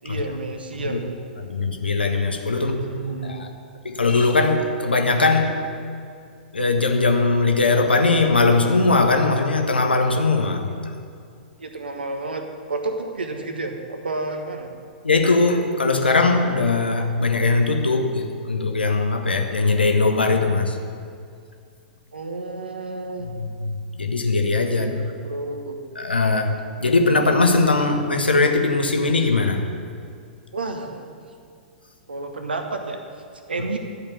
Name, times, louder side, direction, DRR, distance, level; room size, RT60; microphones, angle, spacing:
voice 1, 0.0-1.2 2.5-3.4 11.6-14.7 22.1-23.3 24.7-24.9 25.2-25.8 30.5-31.3 32.1-33.0 33.5-33.8, right 3 dB, 75° right, 5 dB, 1.2 m, -30 dB
voice 2, 1.4-2.7 3.2-3.5 3.8-5.6 6.5-10.9 15.0-20.8 23.4-25.0 26.0-29.6, left 3 dB, 80° left, 4 dB, 1.2 m, -20 dB
11.5 x 5.1 x 8.3 m, 2.3 s
figure-of-eight pair, 105°, 5 cm